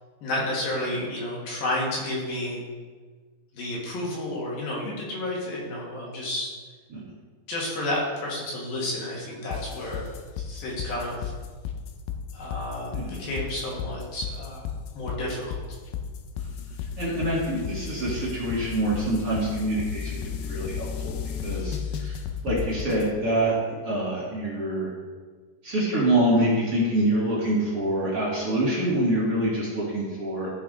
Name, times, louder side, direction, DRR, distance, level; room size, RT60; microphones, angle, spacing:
voice 1, 0.2-2.6 3.5-6.5 7.5-10.1 10.4-11.3 12.3-15.6, left 1 dB, 65° left, -4 dB, 3.5 m, -31 dB
sound 1, 9.5-23.1, left 7 dB, 85° left, 2.6 m, -33 dB
voice 2, 12.9-13.3 17.0-21.2 21.4-22.2 22.4-23.6 23.8-24.9 25.6-30.5, right 1 dB, 45° right, -7 dB, 2.5 m, -26 dB
14.0 x 5.9 x 3.8 m, 1.5 s
omnidirectional pair, 4.6 m